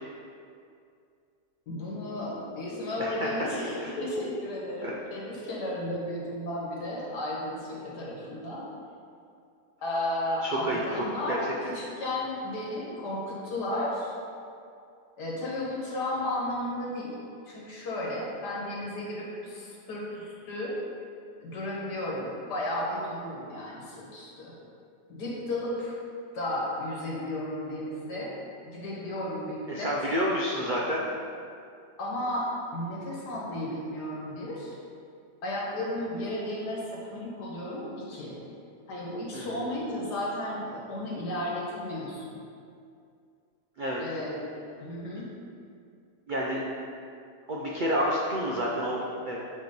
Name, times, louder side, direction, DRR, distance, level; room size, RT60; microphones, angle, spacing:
voice 1, 1.7-8.7 9.8-14.1 15.2-17.2 17.5-20.8 21.4-24.5 25.1-26.0 26.3-28.3 28.7-30.0 32.0-34.8 35.4-38.4 38.9-42.4 44.0-44.5 44.8-45.3, left 1 dB, 85° left, -4 dB, 1.9 m, -33 dB
voice 2, 3.0-3.3 3.8-3.9 4.8-4.9 10.4-11.4 29.7-31.0 39.3-39.6 43.8-44.0 46.3-46.6 47.5-49.0 49.3-49.4, equal, 75° right, -4 dB, 0.4 m, -29 dB
7.5 x 3.1 x 5.2 m, 2.4 s
omnidirectional pair, 1.7 m